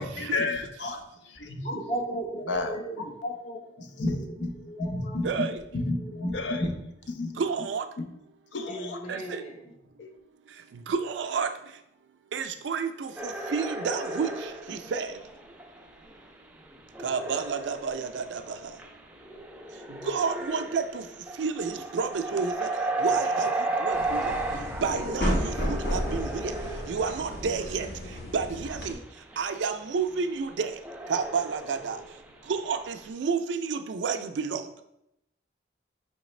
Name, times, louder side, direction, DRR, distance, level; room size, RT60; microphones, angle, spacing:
voice 1, 0.0-1.5 2.5-3.6 5.4-5.5 6.3-6.6 7.2-7.3 8.0-8.1 8.5-9.1 10.0-10.1, left 3 dB, 85° left, 7 dB, 0.5 m, -32 dB
voice 2, 1.4-3.0 4.0-6.7 7.4-7.5 8.7-9.7, equal, 35° left, 1 dB, 0.7 m, -33 dB
voice 3, 7.4-7.8 9.1-9.2 10.9-11.5 12.3-13.1 13.5-14.3 14.7-15.1 17.0-18.4 20.1-20.8 21.4-22.5 23.0-23.5 23.8-24.2 24.8-26.3 26.9-27.9 28.3-28.9 29.4-30.7 31.1-32.0 32.5-34.6, right 5 dB, 85° right, 8 dB, 0.4 m, -29 dB
sound 1, 13.2-16.3 16.6-27.9 28.3-28.4 29.1-32.9, right 2 dB, 10° right, 0.3 m, -34 dB
sound 2, 23.9-28.9, equal, 60° left, 1.0 m, -32 dB
4.8 x 3.2 x 3.1 m, 0.82 s
head